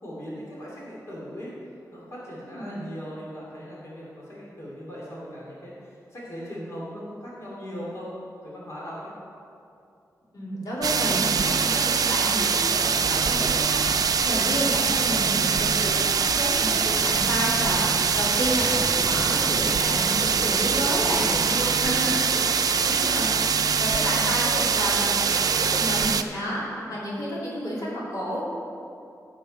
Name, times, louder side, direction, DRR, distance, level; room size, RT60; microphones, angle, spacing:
voice 1, 0.0-1.5 1.9-8.1 8.4-9.1 14.5-15.0 20.8-22.9 26.9-27.0, equal, 45° left, -6 dB, 2.8 m, -38 dB
voice 2, 2.5-2.8 10.3-21.2 21.7-22.2 22.9-23.3 23.8-28.4, equal, 70° left, -7 dB, 2.9 m, -30 dB
sound 1, 10.8-26.2, right 6 dB, 70° right, 0.5 m, -23 dB
Wind / Fire, 13.0-21.6, right 1 dB, 5° left, 1.6 m, -39 dB
15.0 x 7.5 x 4.3 m, 2.6 s
wide cardioid pair, 170°, 7 cm